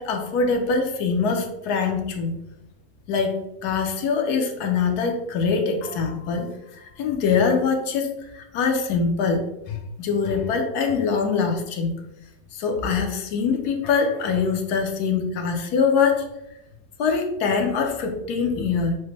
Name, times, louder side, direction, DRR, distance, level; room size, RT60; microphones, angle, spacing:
voice 1, 0.0-2.4 3.1-11.9 12.5-16.3 17.0-19.0, left 5 dB, 70° left, 4 dB, 1.1 m, -23 dB
6.0 x 2.2 x 3.2 m, 0.88 s
omnidirectional pair, 1.9 m